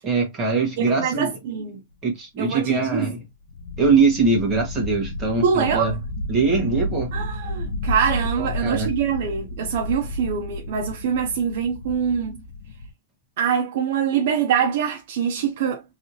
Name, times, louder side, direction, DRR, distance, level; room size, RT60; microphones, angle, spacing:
voice 1, 0.0-1.3 2.0-3.2 3.8-6.0 6.3-7.1 8.4-8.9, right 4 dB, 15° right, 1.2 m, -22 dB
voice 2, 0.8-1.8 2.4-3.1 5.4-6.0 7.1-12.4 13.4-15.8, right 7 dB, 50° right, 0.6 m, -24 dB
sound 1, 3.4-12.9, left 1 dB, 75° left, 0.8 m, -31 dB
3.2 x 2.7 x 2.7 m
supercardioid pair, 175°, 0 cm